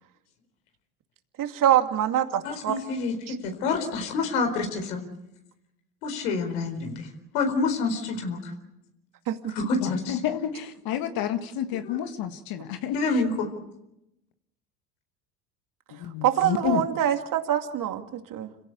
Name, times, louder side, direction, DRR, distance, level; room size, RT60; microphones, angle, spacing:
voice 1, 1.4-2.8 3.3-3.4 9.3-9.6 16.2-18.5, right 11 dB, 45° right, 6 dB, 2.5 m, -25 dB
voice 2, 2.4-5.0 6.0-7.1 7.3-8.5 9.5-10.5 11.9-12.0 12.9-13.5, left 3 dB, 70° left, 5 dB, 4.5 m, -28 dB
voice 3, 9.8-13.2 16.0-16.8, left 10 dB, 55° left, 8 dB, 1.8 m, -30 dB
27.0 x 16.5 x 8.5 m, 0.89 s
hypercardioid pair, 85°, 44 cm